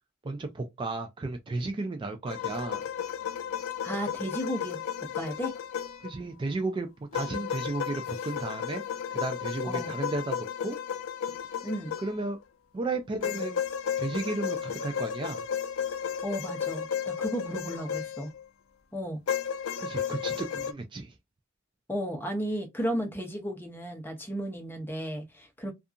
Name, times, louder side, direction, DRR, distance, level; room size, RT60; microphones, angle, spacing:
voice 1, 0.2-2.8 6.0-6.9 7.1-8.8 9.1-10.8 12.0-12.4 12.7-13.6 14.0-15.4 19.8-21.1, right 2 dB, 25° right, 0.3 m, -33 dB
sound 1, 2.3-6.1 7.1-12.4 13.2-18.4 19.3-20.7, left 8 dB, 80° left, 0.4 m, -33 dB
voice 2, 3.8-4.8 5.1-5.5 9.6-9.9 11.6-11.9 16.2-18.3 18.9-19.2 21.9-25.7, equal, 10° left, 0.7 m, -34 dB
2.7 x 2.4 x 2.4 m
head